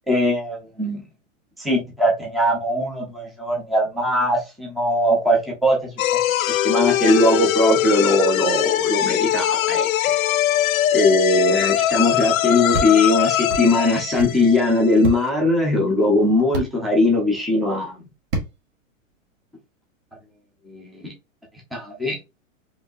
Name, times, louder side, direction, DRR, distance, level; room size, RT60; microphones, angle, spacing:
voice 1, 0.1-1.0 1.6-5.9 6.6-9.9 10.9-18.1 20.6-21.1 21.7-22.2, left 1 dB, ahead, 0.7 m, -20 dB
sound 1, 6.0-15.2, left 12 dB, 85° left, 0.5 m, -21 dB
sound 2, 12.7-12.9 13.5-13.6 14.2-14.3 15.0-15.2 16.5-16.7 18.3-18.5, right 2 dB, 35° right, 1.2 m, -25 dB
4.9 x 2.9 x 2.5 m
hypercardioid pair, 155°, 40 cm